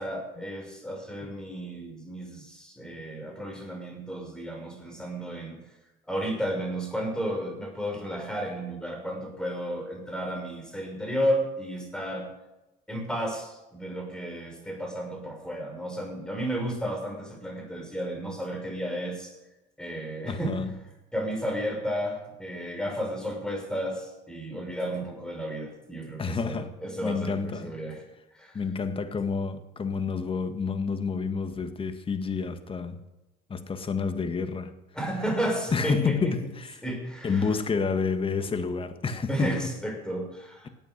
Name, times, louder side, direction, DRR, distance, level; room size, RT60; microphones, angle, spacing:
voice 1, 0.0-5.6 6.1-12.3 12.9-19.3 19.8-20.6 21.1-28.0 28.3-28.6 34.9-36.3 36.8-37.5 39.3-40.7, equal, 5° left, 6.0 m, -33 dB
voice 2, 20.3-20.8 26.2-26.7 27.0-27.7 28.5-33.0 33.5-34.7 35.7-36.8 37.2-39.7, left 5 dB, 30° left, 1.8 m, -29 dB
18.0 x 9.1 x 6.6 m
supercardioid pair, 85°, 18 cm